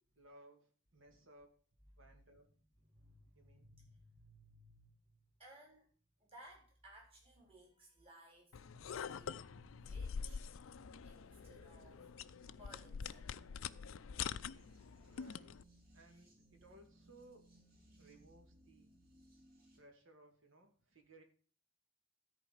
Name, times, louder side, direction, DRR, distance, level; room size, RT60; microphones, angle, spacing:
voice 1, 0.2-1.7 2.0-2.5 3.3-3.7 15.0-15.6 15.9-17.5 18.0-18.9 19.7-21.2, right 1 dB, 70° right, 2.4 m, -62 dB
voice 2, 2.8-5.9 6.2-8.5 9.0-10.4 11.0-12.0 12.5-13.3, right 1 dB, 30° right, 4.2 m, -61 dB
sound 1, 8.5-15.6, left 7 dB, 75° left, 0.4 m, -46 dB
sound 2, 8.6-19.8, right 1 dB, 50° right, 4.2 m, -65 dB
13.5 x 4.7 x 7.2 m
head